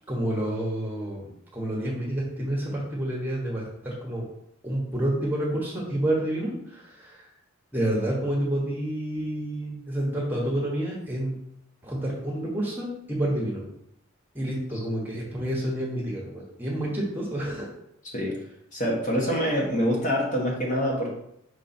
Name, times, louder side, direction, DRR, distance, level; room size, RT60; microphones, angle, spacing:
voice 1, 0.1-4.2 4.6-7.3 7.7-11.3 11.8-13.7 14.3-17.7, right 1 dB, 10° right, -3 dB, 1.2 m, -29 dB
voice 2, 18.7-21.1, equal, 35° left, -2 dB, 1.2 m, -25 dB
5.1 x 4.4 x 4.3 m, 0.77 s
head